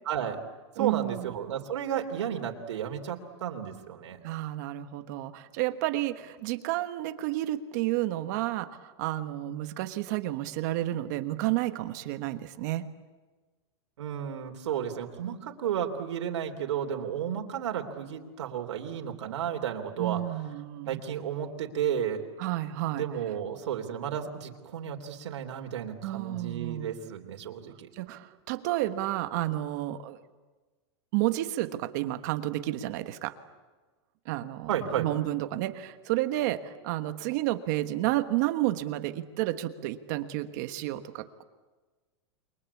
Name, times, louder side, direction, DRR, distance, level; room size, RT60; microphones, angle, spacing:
voice 1, 0.0-0.4 0.8-4.2 14.0-20.2 20.9-22.2 22.9-27.9 34.7-35.1, right 9 dB, 90° right, 3 dB, 3.3 m, -33 dB
voice 2, 0.8-1.3 4.2-12.8 20.0-21.0 22.4-23.0 26.0-26.9 27.9-30.2 31.1-33.3 34.2-34.7 35.0-41.4, right 15 dB, 40° right, 10 dB, 1.3 m, -31 dB
29.0 x 23.0 x 8.5 m, 1.3 s
supercardioid pair, 175°, 15 cm